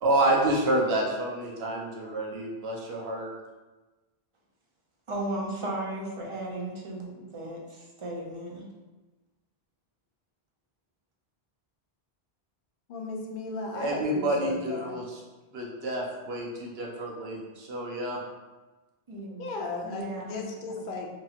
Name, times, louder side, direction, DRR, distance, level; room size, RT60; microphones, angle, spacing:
voice 1, 0.0-3.3 13.7-15.2 15.5-18.2, right 1 dB, 80° right, -2 dB, 0.9 m, -28 dB
voice 2, 5.1-8.6 19.1-19.5 19.8-20.5, right 1 dB, 40° right, -3 dB, 0.5 m, -35 dB
voice 3, 12.9-15.0 19.4-21.1, left 3 dB, 60° left, 0 dB, 0.7 m, -36 dB
2.8 x 2.7 x 2.4 m, 1.2 s
omnidirectional pair, 1.0 m